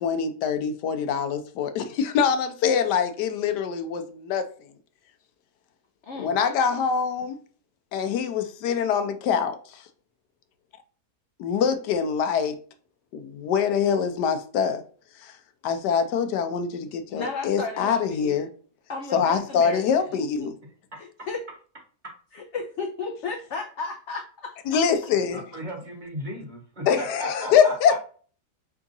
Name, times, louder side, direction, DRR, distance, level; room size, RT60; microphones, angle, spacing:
voice 1, 0.0-4.5 6.2-7.4 7.9-9.8 11.4-12.6 13.1-14.8 15.2-15.3 15.6-18.5 19.1-20.5 24.7-25.4 26.9-27.9, left 7 dB, 90° left, 1.3 m, -24 dB
voice 2, 6.0-6.4 17.1-18.5 18.9-20.2 21.0-21.4 22.3-24.6, left 4 dB, 65° left, 0.7 m, -34 dB
voice 3, 25.1-28.0, right 1 dB, 30° right, 1.4 m, -36 dB
4.7 x 3.5 x 2.6 m
omnidirectional pair, 1.7 m